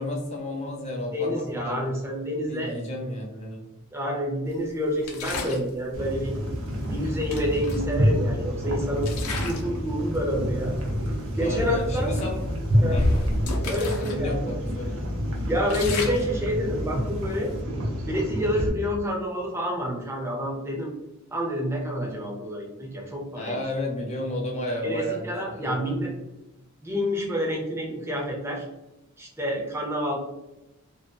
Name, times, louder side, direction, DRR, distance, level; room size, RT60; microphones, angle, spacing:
voice 1, 0.0-1.9 2.5-3.6 11.4-12.4 12.9-13.1 14.0-15.1 23.3-25.3 25.6-25.8, left 1 dB, 30° left, -1 dB, 0.6 m, -32 dB
voice 2, 1.1-2.8 3.9-6.3 6.9-9.1 9.4-10.8 11.3-12.1 12.8-13.0 13.6-14.5 15.5-17.5 18.1-20.9 21.3-23.6 24.8-26.1 26.8-28.7 29.2-30.2, equal, 10° right, -2 dB, 0.6 m, -28 dB
sound 1, 5.0-5.7 6.8-6.9 7.3-8.5 9.0-9.8 10.1-10.4 11.1-11.2 11.5-11.7 12.3-14.2 14.5-14.6 15.1-17.6, left 2 dB, 85° left, 0.5 m, -31 dB
sound 2, 5.9-18.7, equal, 60° right, 0.5 m, -28 dB
2.3 x 2.3 x 2.5 m, 0.97 s
head